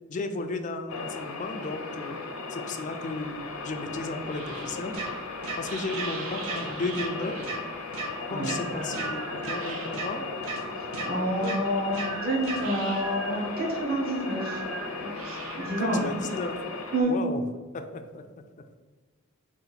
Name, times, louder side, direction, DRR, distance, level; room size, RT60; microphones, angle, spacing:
voice 1, 0.1-2.2 2.5-4.9 5.6-7.6 8.3-10.3 11.2-11.7 15.8-16.6 17.1-17.4 17.7-18.2, left 3 dB, 35° left, 7 dB, 0.3 m, -34 dB
sound 1, 0.9-17.0, left 3 dB, 85° left, 0.6 m, -37 dB
sound 2, 3.2-10.3 10.7-16.6, right 5 dB, 65° right, 0.5 m, -42 dB
sound 3, 4.9-5.1 5.4-5.6 5.9-6.1 6.4-6.6 6.9-7.1 7.4-7.6 7.9-8.1 8.4-8.6 8.9-9.1 9.4-9.6 9.9-10.1 10.4-10.6 10.9-11.1 11.4-11.6 11.9-12.1 12.4-12.6, right 4 dB, 80° right, 0.9 m, -34 dB
voice 2, 11.0-14.6 15.0-16.3 16.9-17.2, right 1 dB, 45° right, -2 dB, 0.9 m, -28 dB
3.9 x 2.4 x 4.0 m, 1.4 s
head